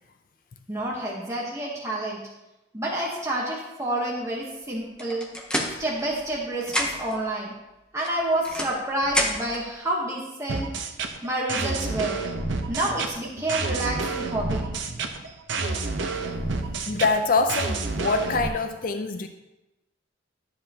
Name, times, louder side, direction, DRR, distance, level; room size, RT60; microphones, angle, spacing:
voice 1, 0.7-2.2 2.7-5.3 5.8-7.5 7.9-10.7 11.2-12.2 12.7-14.7, right 1 dB, 15° right, -4 dB, 1.1 m, -29 dB
sound 1, 5.0-6.4 6.6-7.2 8.0-9.6, equal, 5° left, 0.7 m, -29 dB
sound 2, 10.5-18.5, right 3 dB, 70° right, 0.7 m, -29 dB
voice 2, 16.9-19.3, left 3 dB, 45° left, 7 dB, 0.4 m, -24 dB
11.0 x 7.4 x 2.8 m, 0.96 s
head